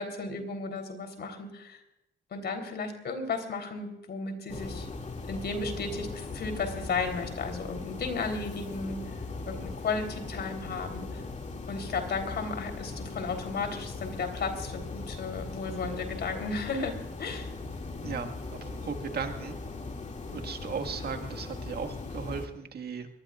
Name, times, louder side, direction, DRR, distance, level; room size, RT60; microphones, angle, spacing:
voice 1, 0.0-1.8 2.3-4.9 5.3-9.0 9.5-11.2 11.7-17.5, left 4 dB, 55° left, 5 dB, 3.7 m, -34 dB
sound 1, 4.5-22.5, left 3 dB, 35° left, 2.4 m, -39 dB
voice 2, 18.6-19.5 20.3-23.1, right 6 dB, 55° right, 5 dB, 1.9 m, -36 dB
24.0 x 20.0 x 2.5 m, 0.90 s
cardioid pair, 90°, 20 cm